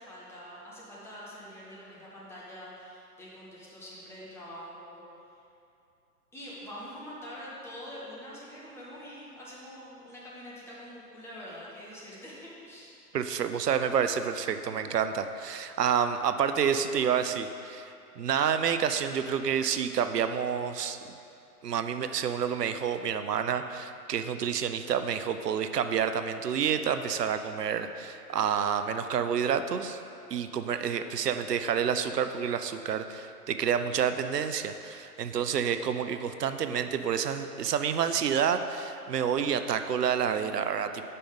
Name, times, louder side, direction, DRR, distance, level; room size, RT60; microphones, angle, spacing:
voice 1, 0.0-5.0 5.3-5.4 6.3-13.0 31.2-31.3, equal, 5° left, -7 dB, 0.6 m, -45 dB
voice 2, 13.1-21.0 21.6-30.0 30.3-41.0, right 7 dB, 85° right, 9 dB, 0.5 m, -29 dB
5.5 x 5.2 x 5.3 m, 2.7 s
figure-of-eight pair, 115°, 47 cm